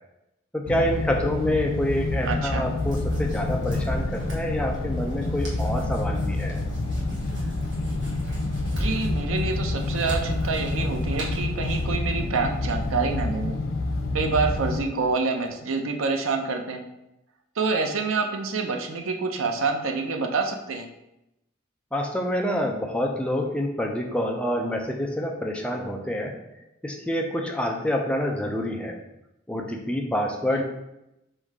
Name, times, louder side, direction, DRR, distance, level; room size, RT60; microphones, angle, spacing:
voice 1, 0.5-6.6 21.9-26.3 26.8-29.0 29.5-30.6, left 1 dB, 5° left, 1 dB, 0.4 m, -27 dB
sound 1, 0.7-14.8, left 2 dB, 85° left, 0.5 m, -28 dB
voice 2, 2.2-2.6 8.7-13.6 14.1-16.8 17.6-20.9 30.5-30.6, right 4 dB, 90° right, 4 dB, 0.6 m, -27 dB
sound 2, 2.8-11.9, equal, 60° right, 1.2 m, -35 dB
3.8 x 2.7 x 4.6 m, 0.89 s
head